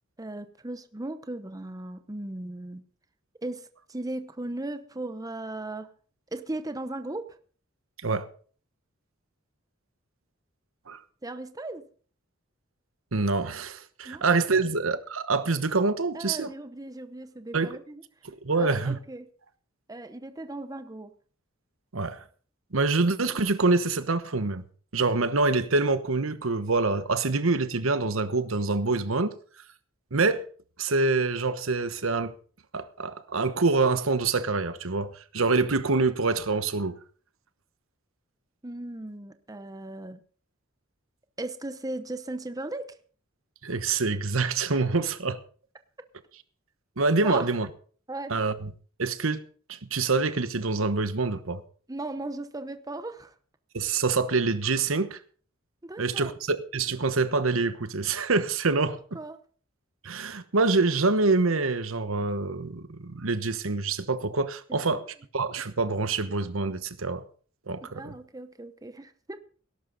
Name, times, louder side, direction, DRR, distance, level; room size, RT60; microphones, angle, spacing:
voice 1, 0.2-2.8 3.4-5.9 6.3-7.3 11.2-11.8 14.0-14.2 16.1-18.0 18.6-19.3 19.9-21.1 38.6-40.2 41.4-43.0 47.2-47.5 48.1-48.4 51.9-53.3 55.8-56.3 59.1-59.4 67.8-69.4, right 2 dB, 20° right, 0.8 m, -37 dB
voice 2, 13.1-16.5 17.5-17.8 18.4-19.0 21.9-22.2 22.7-24.6 24.9-29.4 30.1-30.4 30.8-32.3 32.7-37.0 43.6-45.4 47.0-47.7 48.3-48.7 49.0-49.4 49.7-51.6 53.7-55.2 56.0-59.0 60.0-67.2 67.7-68.1, right 3 dB, 80° right, 1.1 m, -26 dB
17.5 x 11.5 x 4.0 m
head